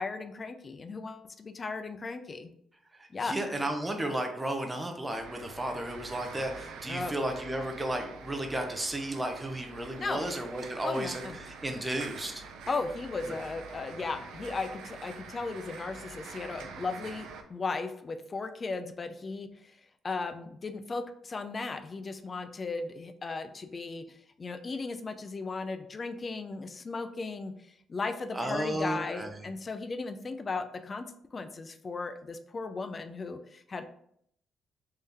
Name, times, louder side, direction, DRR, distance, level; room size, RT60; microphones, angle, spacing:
voice 1, 0.0-2.5 3.1-3.3 6.9-7.1 10.0-10.2 10.8-11.4 12.7-19.8 20.0-24.1 24.4-27.5 27.9-31.1 31.3-33.8, left 3 dB, 35° left, 9 dB, 0.4 m, -36 dB
voice 2, 3.2-12.4 13.3-13.4 28.3-29.3, right 1 dB, 15° right, 3 dB, 0.6 m, -33 dB
sound 1, 5.1-17.4, right 4 dB, 85° right, 0.5 m, -46 dB
3.7 x 2.6 x 3.4 m, 0.68 s
cardioid pair, 90°, 0 cm